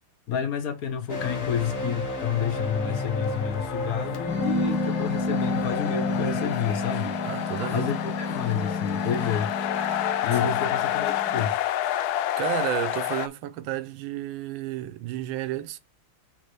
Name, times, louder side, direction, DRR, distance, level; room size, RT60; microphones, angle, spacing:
voice 1, 0.3-7.2 7.7-9.5 10.2-11.6, left 8 dB, 55° left, 1.3 m, -29 dB
sound 1, 1.1-6.4, left 1 dB, 30° left, 1.5 m, -33 dB
sound 2, 1.8-13.3, left 12 dB, 80° left, 0.8 m, -30 dB
sound 3, 4.3-11.5, left 2 dB, 15° right, 0.4 m, -30 dB
voice 2, 7.2-8.0 10.4-10.6 12.4-15.8, right 12 dB, 80° right, 1.4 m, -31 dB
6.5 x 3.2 x 5.9 m
omnidirectional pair, 2.2 m